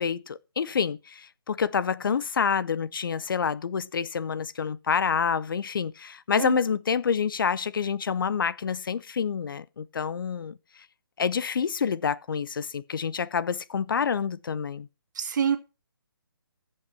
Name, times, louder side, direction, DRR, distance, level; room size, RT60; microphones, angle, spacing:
voice 1, 0.0-10.6 11.2-14.9, left 6 dB, 60° left, 0.6 m, -27 dB
voice 2, 15.2-15.6, right 7 dB, 50° right, 2.1 m, -26 dB
14.5 x 5.4 x 5.7 m
figure-of-eight pair, 150°, 13 cm